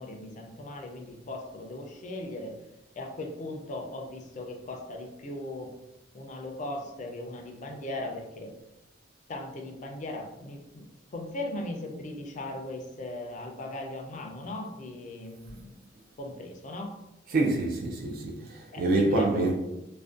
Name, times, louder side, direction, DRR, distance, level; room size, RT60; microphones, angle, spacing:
voice 1, 0.0-2.6 3.0-5.7 6.1-8.5 9.3-10.9 11.1-15.8 16.2-17.0 18.7-19.5, left 1 dB, 40° left, 0.4 m, -38 dB
voice 2, 17.3-19.5, right 2 dB, 50° right, 0.3 m, -26 dB
2.4 x 2.1 x 2.4 m
head